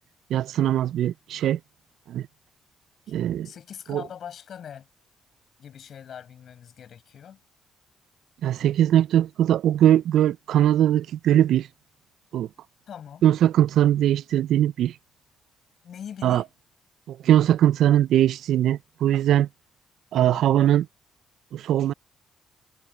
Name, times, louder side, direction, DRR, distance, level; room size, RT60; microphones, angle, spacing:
voice 1, 0.3-1.6 2.1-2.3 3.1-3.5 3.9-4.0 8.4-11.7 12.3-12.5 13.2-14.9 16.2-16.4 17.1-19.5 20.1-20.9 21.5-21.9, right 11 dB, 75° right, 0.3 m, -21 dB
voice 2, 3.4-4.9 5.6-7.4 12.9-13.2 15.8-16.5 20.2-20.4, left 8 dB, 60° left, 7.0 m, -42 dB
cardioid pair, 90°, 0 cm